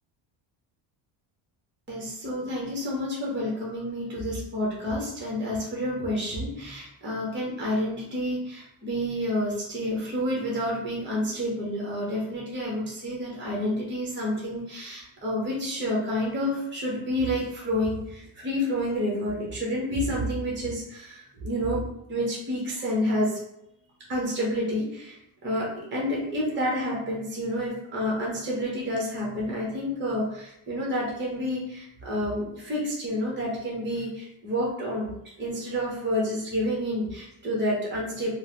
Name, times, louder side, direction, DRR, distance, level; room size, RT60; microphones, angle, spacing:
voice 1, 1.9-21.8 22.1-23.4 24.1-25.1 25.4-35.1 35.4-38.3, equal, 20° right, -4 dB, 0.9 m, -29 dB
3.2 x 2.1 x 2.9 m, 0.80 s
cardioid pair, 115°, 50 cm